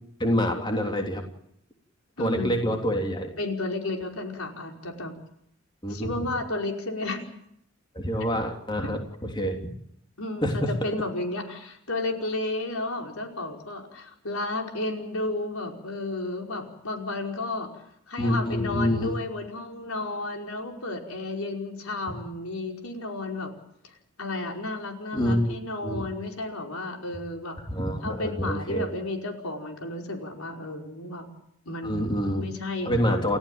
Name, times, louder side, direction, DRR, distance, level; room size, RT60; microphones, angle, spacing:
voice 1, 0.2-1.2 2.2-3.3 5.8-6.1 7.9-9.6 10.4-10.7 18.2-19.1 25.1-25.5 25.8-26.0 27.7-28.9 31.8-32.5 32.8-33.4, equal, 20° left, 3 dB, 3.3 m, -26 dB
voice 2, 2.2-2.7 3.4-5.1 5.9-7.2 8.8-8.9 10.2-23.5 23.8-27.6 28.0-31.3 31.7-33.3, left 2 dB, 85° left, 3 dB, 5.2 m, -33 dB
30.0 x 14.5 x 9.0 m, 0.71 s
head